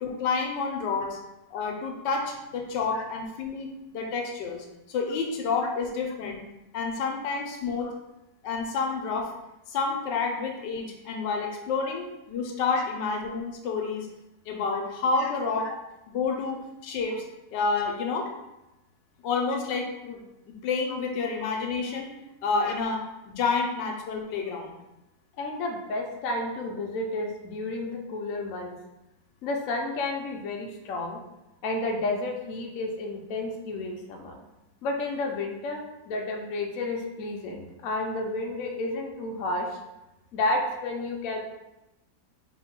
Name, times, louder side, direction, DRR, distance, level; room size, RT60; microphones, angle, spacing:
voice 1, 0.0-1.2 1.5-6.4 6.7-7.9 8.4-9.3 9.7-14.1 14.5-15.7 16.1-17.2 17.5-18.3 19.2-20.2 20.6-22.1 22.4-24.7, left 4 dB, 80° left, 2 dB, 1.3 m, -29 dB
voice 2, 25.4-28.8 29.4-31.2 31.6-34.4 34.8-39.7 40.3-41.4, left 2 dB, 60° left, 1 dB, 0.9 m, -31 dB
4.1 x 3.4 x 3.6 m, 0.96 s
omnidirectional pair, 1.9 m